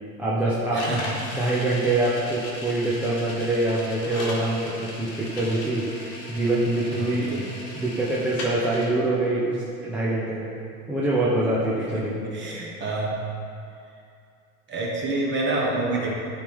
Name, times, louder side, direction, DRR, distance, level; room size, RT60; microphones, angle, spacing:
voice 1, 0.2-10.6 10.9-12.4, right 2 dB, 5° right, -8 dB, 0.4 m, -25 dB
sound 1, 0.8-8.9, left 1 dB, 35° left, 1.2 m, -37 dB
voice 2, 6.9-7.4 11.9-12.0 12.3-13.1 14.7-16.1, right 2 dB, 25° right, -3 dB, 1.2 m, -28 dB
9.0 x 3.6 x 3.4 m, 2.4 s
supercardioid pair, 130°, 44 cm